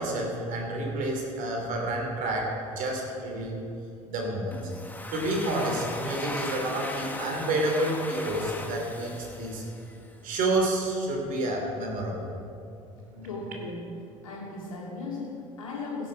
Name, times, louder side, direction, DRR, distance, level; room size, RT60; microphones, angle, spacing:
voice 1, 0.0-3.6 4.1-4.6 5.1-9.6 10.2-12.3 13.1-13.3, right 1 dB, 50° right, 0 dB, 3.0 m, -29 dB
Domestic sounds home sounds, 4.5-10.1, left 1 dB, 10° left, 1.4 m, -38 dB
voice 2, 13.2-13.8 14.2-16.1, left 3 dB, 80° left, -3 dB, 2.8 m, -37 dB
16.0 x 8.5 x 5.2 m, 2.6 s
figure-of-eight pair, 60°, 17 cm